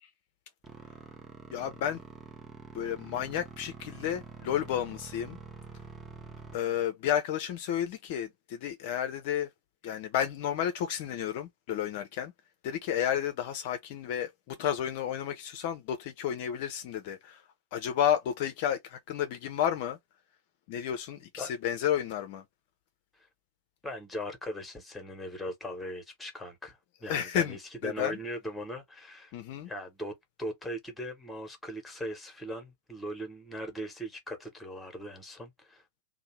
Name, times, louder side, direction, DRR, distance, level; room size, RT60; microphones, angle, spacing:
sound 1, 0.6-6.6, right 4 dB, 15° right, 0.6 m, -47 dB
voice 1, 1.5-2.0 2.7-5.4 6.5-9.5 9.8-12.3 12.6-17.4 17.7-20.0 20.7-22.4 27.1-27.6 27.8-28.2 29.3-29.7, left 10 dB, 50° left, 0.4 m, -31 dB
voice 2, 23.8-29.3 29.7-35.8, equal, 5° left, 1.0 m, -39 dB
2.7 x 2.0 x 3.0 m
figure-of-eight pair, 90°, 0 cm